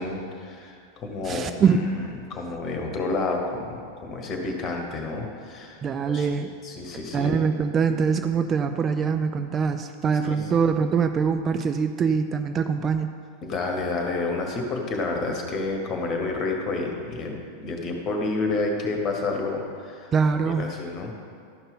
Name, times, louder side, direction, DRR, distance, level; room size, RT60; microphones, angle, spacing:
voice 1, 0.0-5.8 6.1-6.3 6.6-7.4 10.2-10.5 13.4-20.1 20.5-21.1, left 3 dB, 30° left, 2 dB, 1.6 m, -30 dB
voice 2, 1.2-2.0 5.8-6.5 7.1-13.1 20.1-20.7, right 6 dB, 25° right, 8 dB, 0.4 m, -23 dB
12.5 x 5.3 x 5.6 m, 2.3 s
figure-of-eight pair, 90°, 0 cm